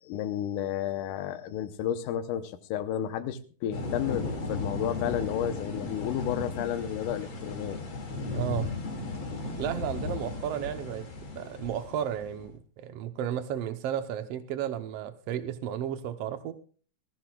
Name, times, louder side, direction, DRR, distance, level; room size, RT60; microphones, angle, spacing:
voice 1, 0.0-7.8, left 10 dB, 75° left, 9 dB, 2.4 m, -32 dB
sound 1, 3.7-12.5, left 3 dB, 40° left, 2.6 m, -36 dB
voice 2, 8.3-8.7 9.6-16.5, right 10 dB, 75° right, 8 dB, 1.4 m, -33 dB
21.5 x 15.0 x 2.3 m, 0.39 s
omnidirectional pair, 3.9 m